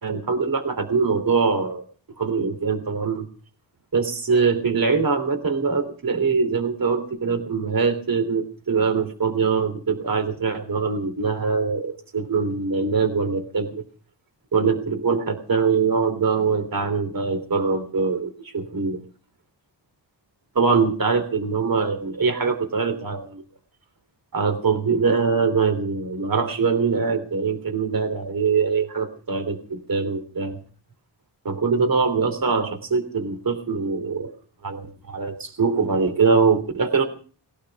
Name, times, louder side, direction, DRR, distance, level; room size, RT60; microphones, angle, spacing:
voice 1, 0.0-1.8 2.2-3.3 3.9-13.8 14.5-19.0 20.5-23.4 24.3-30.6 31.4-34.3 34.6-37.1, right 5 dB, 50° right, 8 dB, 3.3 m, -23 dB
20.0 x 12.0 x 6.0 m, 0.42 s
cardioid pair, 75°, 43 cm